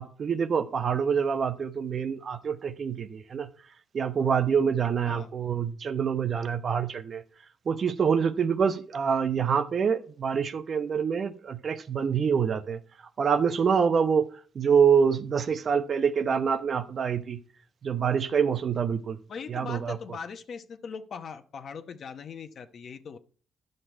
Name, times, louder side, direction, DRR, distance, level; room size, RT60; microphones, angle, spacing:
voice 1, 0.0-3.5 3.9-7.2 7.7-12.8 13.2-14.3 14.5-17.4 17.8-19.2 19.5-20.0, right 6 dB, 50° right, 0.8 m, -26 dB
voice 2, 19.3-23.2, left 6 dB, 60° left, 0.9 m, -40 dB
11.0 x 6.6 x 4.5 m
cardioid pair, 95°, 0 cm